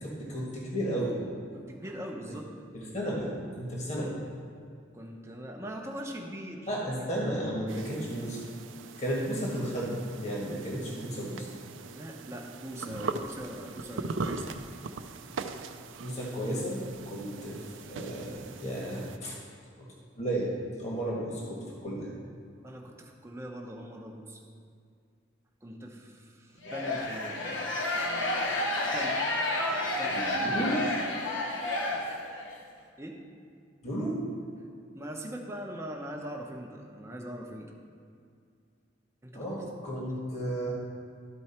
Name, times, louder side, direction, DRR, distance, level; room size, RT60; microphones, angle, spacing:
voice 1, 0.0-1.1 2.7-3.3 3.6-4.2 6.7-8.4 9.0-11.5 16.0-16.8 17.0-17.6 17.8-19.3 19.8-19.9 20.2-20.5 20.8-22.1 30.1-30.8 33.8-34.2 39.3-40.8, right 1 dB, 35° left, -4 dB, 1.5 m, -33 dB
voice 2, 1.5-2.5 4.9-6.7 7.0-7.1 11.9-14.5 17.4-17.5 22.6-24.4 25.6-27.4 28.9-29.2 29.7-30.5 33.0-33.2 34.9-37.7 39.2-39.4 40.0-40.1, equal, 15° right, 0 dB, 0.7 m, -41 dB
sound 1, 7.7-19.2, right 4 dB, 85° right, 0.4 m, -40 dB
sound 2, 26.6-32.5, left 1 dB, 85° left, 1.1 m, -30 dB
12.5 x 4.6 x 4.3 m, 2.3 s
head